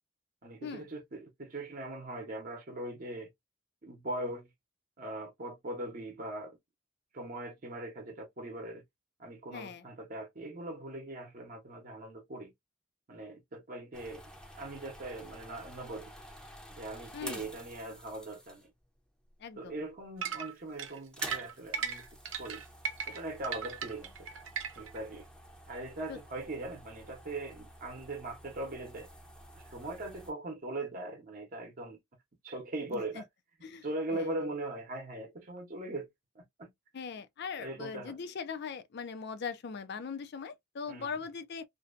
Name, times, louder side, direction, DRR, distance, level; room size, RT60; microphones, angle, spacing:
voice 1, 0.4-3.3 3.8-4.5 5.0-6.6 7.1-8.8 9.2-12.5 13.1-14.2 14.6-16.1 16.7-18.7 19.6-22.0 22.4-22.6 23.1-24.3 24.8-25.3 25.7-29.1 29.5-32.0 32.4-33.3 33.8-36.1 36.3-36.7 37.6-38.2 40.9-41.1, right 2 dB, 45° right, 0.8 m, -40 dB
voice 2, 9.5-9.8 17.1-17.5 19.4-19.8 26.1-26.2 32.9-33.0 33.6-33.8 34.1-34.3 36.9-41.6, left 5 dB, 55° left, 0.4 m, -40 dB
sound 1, 13.9-18.8 19.6-20.1 20.3-20.4 21.0-30.3, equal, 5° left, 0.6 m, -50 dB
sound 2, 20.2-25.0, right 7 dB, 80° right, 0.7 m, -37 dB
2.6 x 2.2 x 2.4 m
head